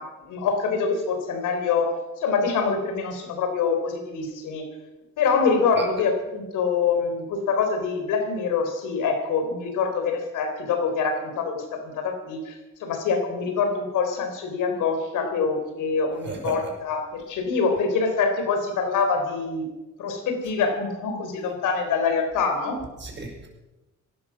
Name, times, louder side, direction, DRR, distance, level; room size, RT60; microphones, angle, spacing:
voice 1, 0.0-4.7 5.2-19.7 20.0-22.8, left 5 dB, 90° left, 5 dB, 3.9 m, -25 dB
voice 2, 16.2-16.7 23.0-23.5, right 3 dB, 35° right, 1 dB, 6.0 m, -34 dB
18.5 x 12.5 x 6.2 m, 1.1 s
cardioid pair, 90°, 30 cm